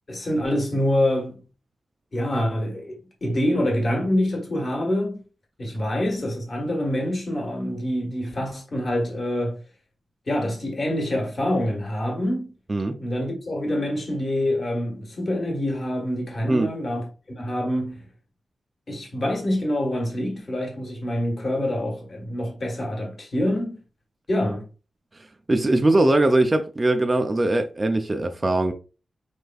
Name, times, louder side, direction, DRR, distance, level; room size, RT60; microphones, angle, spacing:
voice 1, 0.1-1.4 2.1-5.2 5.6-9.6 10.3-12.5 13.0-17.1 17.4-18.1 18.9-23.8 24.3-24.6, left 1 dB, 35° left, 1.3 m, -26 dB
voice 2, 25.5-28.7, right 2 dB, 20° right, 0.3 m, -21 dB
4.3 x 3.3 x 2.3 m
wide cardioid pair, 150°, 0 cm